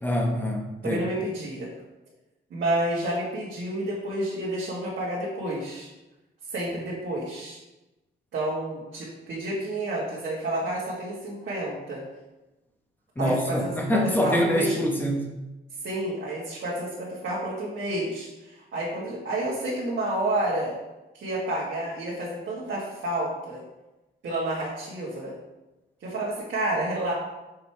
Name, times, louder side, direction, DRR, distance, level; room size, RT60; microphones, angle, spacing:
voice 1, 0.0-1.0 13.2-15.3, equal, 10° left, 1 dB, 1.1 m, -25 dB
voice 2, 0.8-1.7 2.5-5.9 6.5-7.6 8.3-12.0 13.2-14.7 15.8-20.7 21.1-23.6 24.2-25.3 26.0-27.1, right 1 dB, 65° right, -8 dB, 2.0 m, -30 dB
6.7 x 5.4 x 4.5 m, 1.0 s
wide cardioid pair, 165°, 20 cm